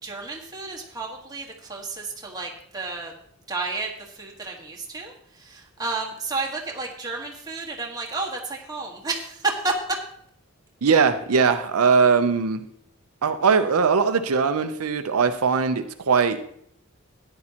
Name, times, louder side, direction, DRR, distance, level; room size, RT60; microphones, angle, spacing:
voice 1, 0.0-3.1 3.5-9.7, right 3 dB, 15° right, -1 dB, 1.5 m, -31 dB
voice 2, 10.8-12.6 13.2-16.4, right 5 dB, 80° right, 8 dB, 0.6 m, -20 dB
13.5 x 9.8 x 2.9 m, 0.69 s
head